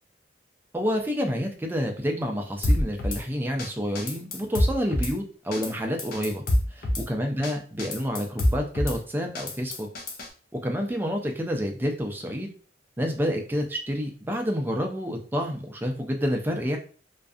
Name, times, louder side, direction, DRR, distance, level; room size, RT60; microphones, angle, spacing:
voice 1, 0.7-6.4 6.7-9.9 10.5-12.5 13.0-16.8, equal, 10° right, 2 dB, 0.4 m, -28 dB
Drum kit / Snare drum, 2.6-3.2 3.6-3.7 4.0-5.1 5.5-5.7 6.0-7.1 7.4-7.5 7.8-9.0 9.4-10.3, left 1 dB, 50° left, 0.5 m, -26 dB
2.5 x 2.4 x 2.3 m, 0.40 s
head